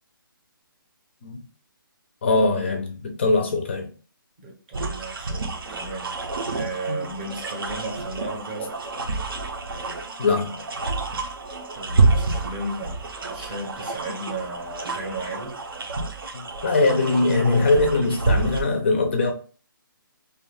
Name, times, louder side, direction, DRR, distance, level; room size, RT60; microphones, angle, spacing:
voice 1, 2.2-3.9 6.9-7.1 10.2-10.6 16.3-19.3, left 3 dB, 30° left, 0.4 m, -22 dB
voice 2, 4.4-6.2 6.5-8.9 11.7-15.6, right 2 dB, 25° right, 0.6 m, -34 dB
sound 1, 4.7-18.6, right 3 dB, 80° right, 0.6 m, -28 dB
2.5 x 2.2 x 3.2 m
hypercardioid pair, 165°, 12 cm